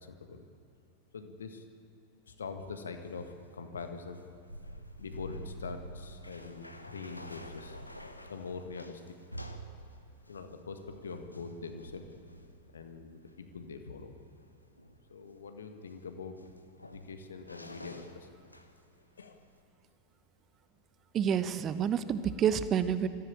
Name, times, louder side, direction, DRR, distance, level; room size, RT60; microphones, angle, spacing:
voice 1, 0.1-0.4 1.1-1.6 2.2-4.2 5.0-7.8 8.3-9.2 10.3-12.2 12.7-14.1 15.1-16.6 16.8-18.3 19.2-19.4, left 4 dB, 70° left, 7 dB, 1.7 m, -43 dB
sound 1, 2.6-18.9 19.2-19.6, equal, 85° left, 1.2 m, -49 dB
voice 2, 21.1-23.1, right 8 dB, 30° right, 13 dB, 1.0 m, -28 dB
21.0 x 14.5 x 9.0 m, 2.4 s
figure-of-eight pair, 90°, 0 cm